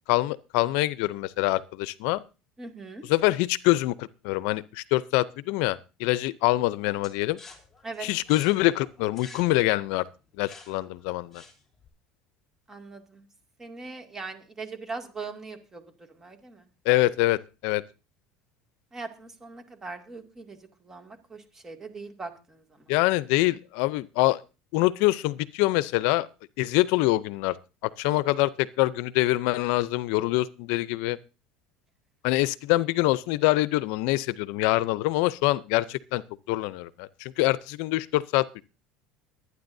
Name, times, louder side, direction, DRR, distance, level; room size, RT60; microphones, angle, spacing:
voice 1, 0.1-2.2 3.1-7.4 8.0-10.0 10.4-11.4 16.9-17.8 22.9-24.4 24.7-26.3 26.6-27.6 27.8-31.2 32.2-36.2 36.5-38.5, left 18 dB, 70° left, 0.5 m, -25 dB
voice 2, 2.6-3.0 7.8-8.1 12.7-13.3 13.6-16.7 18.9-22.9, right 4 dB, 20° right, 2.3 m, -41 dB
sound 1, 7.0-11.9, left 3 dB, 15° left, 3.2 m, -50 dB
23.0 x 9.6 x 2.7 m
supercardioid pair, 125°, 2 cm